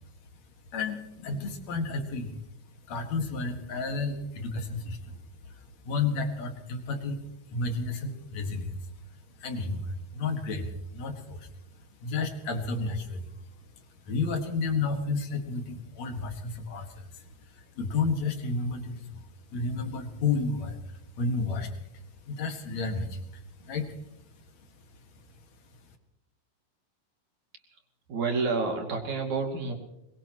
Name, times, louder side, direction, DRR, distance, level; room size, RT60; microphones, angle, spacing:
voice 1, 0.7-2.3 2.9-5.2 5.4-5.5 5.8-7.2 7.5-8.8 9.4-11.5 12.0-13.3 14.1-19.2 19.5-23.9, left 4 dB, 55° left, 5 dB, 2.9 m, -32 dB
voice 2, 28.1-29.7, right 4 dB, 60° right, 2 dB, 3.7 m, -29 dB
22.5 x 21.0 x 3.0 m, 0.86 s
omnidirectional pair, 4.0 m